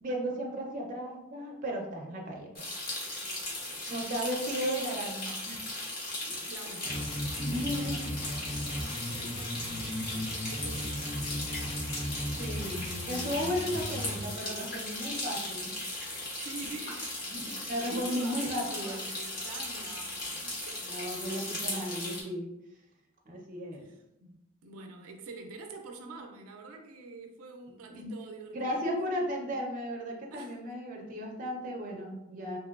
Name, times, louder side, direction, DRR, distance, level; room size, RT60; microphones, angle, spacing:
voice 1, 0.0-2.7 3.9-5.7 6.3-6.4 7.4-8.1 12.4-15.8 17.3-19.0 20.8-22.5 23.3-23.9 27.9-28.1 28.5-32.6, equal, 40° right, -1 dB, 0.5 m, -35 dB
sound 1, 2.6-22.2, left 2 dB, 45° left, 0.8 m, -37 dB
voice 2, 3.6-4.1 6.4-7.2 7.6-8.3 9.1-11.6 16.4-17.2 17.9-20.8 23.8-28.8 30.3-30.6, right 3 dB, 90° right, 4 dB, 0.4 m, -46 dB
sound 2, 6.8-14.3, equal, 25° left, 0.4 m, -36 dB
2.9 x 2.9 x 2.3 m, 0.88 s
head